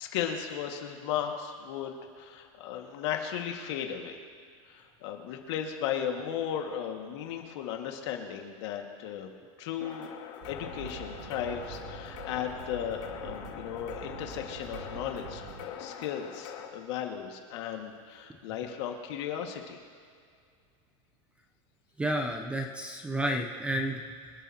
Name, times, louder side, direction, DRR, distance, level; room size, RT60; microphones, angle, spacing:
voice 1, 0.0-4.2 4.7-9.3 9.6-10.1 10.5-19.8, left 9 dB, 60° left, 2 dB, 1.9 m, -36 dB
sound 1, 9.8-16.7, left 8 dB, 90° left, 2.5 m, -43 dB
sound 2, 10.4-15.7, right 6 dB, 60° right, 2.3 m, -45 dB
voice 2, 22.0-24.3, right 1 dB, 5° right, 3 dB, 0.6 m, -31 dB
26.0 x 12.0 x 2.9 m, 2.2 s
supercardioid pair, 170°, 17 cm